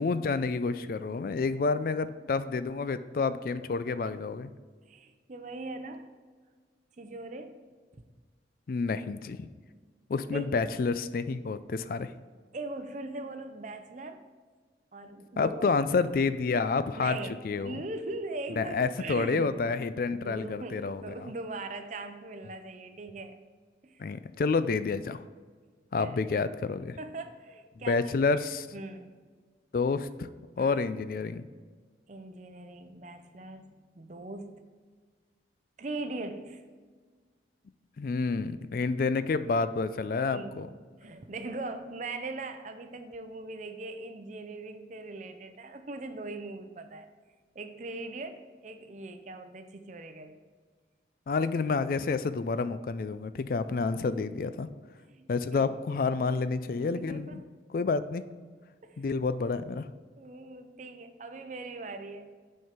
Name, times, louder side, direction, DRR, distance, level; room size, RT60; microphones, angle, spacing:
voice 1, 0.0-4.5 8.7-9.5 10.1-12.1 15.4-17.2 17.4-17.8 18.6-21.3 24.0-25.2 25.9-27.0 27.9-28.7 29.7-30.3 30.6-31.4 38.0-40.7 51.3-54.7 55.3-57.4 57.7-58.2 59.0-59.9, left 4 dB, 50° left, 13 dB, 0.3 m, -29 dB
voice 2, 3.8-4.2 4.9-6.1 7.0-7.6 7.9-8.1 10.3-10.7 12.5-14.2 14.9-15.6 17.0-19.5 20.2-23.4 23.8-24.0 25.9-26.2 27.0-28.0 28.7-29.1 30.6-30.8 32.1-33.7 33.9-34.6 35.8-36.6 40.3-40.7 41.0-47.1 47.5-50.4 54.1-54.2 55.1-55.3 55.5-55.7 56.8-57.5 58.8-59.0 60.2-62.3, right 2 dB, 45° right, 8 dB, 0.6 m, -40 dB
6.4 x 4.5 x 5.0 m, 1.5 s
head